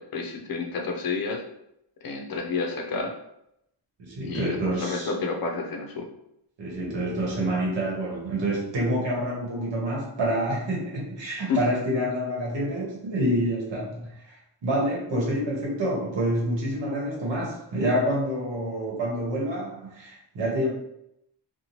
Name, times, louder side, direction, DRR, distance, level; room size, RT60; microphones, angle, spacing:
voice 1, 0.1-1.4 2.0-3.1 4.2-6.1 11.5-11.6, left 4 dB, 55° left, 2 dB, 0.5 m, -30 dB
voice 2, 4.0-5.1 6.6-20.7, right 1 dB, 80° right, -4 dB, 1.0 m, -27 dB
2.7 x 2.1 x 2.9 m, 0.79 s
wide cardioid pair, 150°, 43 cm